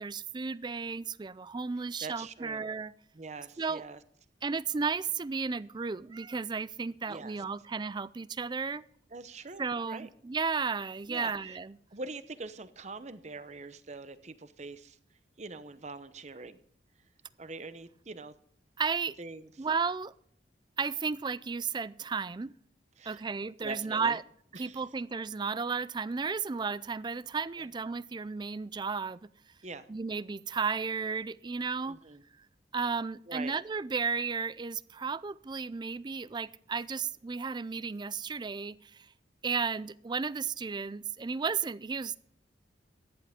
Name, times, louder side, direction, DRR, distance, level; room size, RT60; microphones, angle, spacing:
voice 1, 0.0-2.9 3.6-3.8 4.4-8.8 9.6-11.8 18.8-19.2 19.6-20.1 20.8-22.5 23.1-24.2 24.6-29.3 29.9-32.0 32.7-39.1 39.4-42.2, right 5 dB, 25° right, 0.4 m, -33 dB
voice 2, 2.0-2.7 3.1-4.0 7.1-7.4 9.1-10.1 11.1-11.6 11.9-15.0 15.4-16.6 17.4-18.3 19.2-19.7 23.0-23.2 23.6-24.2 24.5-24.8 27.6-27.7 29.6-29.9 31.8-32.2 33.3-33.5, right 3 dB, 40° right, 0.8 m, -43 dB
14.5 x 10.5 x 3.6 m
head